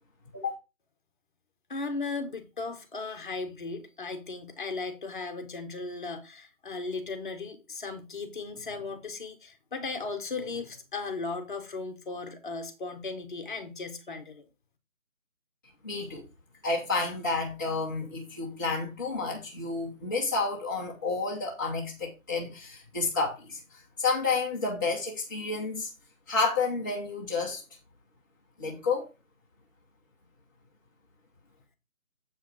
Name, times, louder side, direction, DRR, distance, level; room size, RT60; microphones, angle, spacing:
voice 1, 1.7-14.5, left 3 dB, 35° left, 1.4 m, -36 dB
voice 2, 15.8-16.2 16.6-25.9 26.3-27.6 28.6-29.1, left 3 dB, 15° left, 0.9 m, -30 dB
7.7 x 5.4 x 4.6 m
figure-of-eight pair, 165°, 40 cm